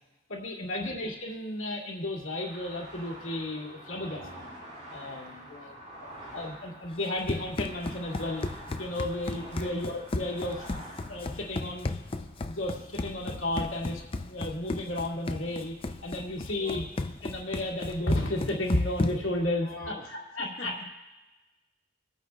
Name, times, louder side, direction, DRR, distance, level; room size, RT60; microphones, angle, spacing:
voice 1, 0.3-4.5 4.9-5.5 6.0-10.7 11.1-11.9 12.4-15.8 16.0-16.9 17.2-20.8, left 1 dB, 90° left, -3 dB, 2.2 m, -33 dB
sound 1, 2.3-15.6 15.9-16.6 16.9-17.7 18.0-20.3, right 1 dB, 35° right, 3.8 m, -48 dB
voice 2, 5.4-6.4 9.4-9.8 16.6-16.9 19.6-20.9, left 2 dB, 50° left, 1 dB, 1.4 m, -44 dB
Run, 6.9-19.4, left 2 dB, 30° left, 0.4 m, -35 dB
25.0 x 9.1 x 2.3 m, 1.1 s
head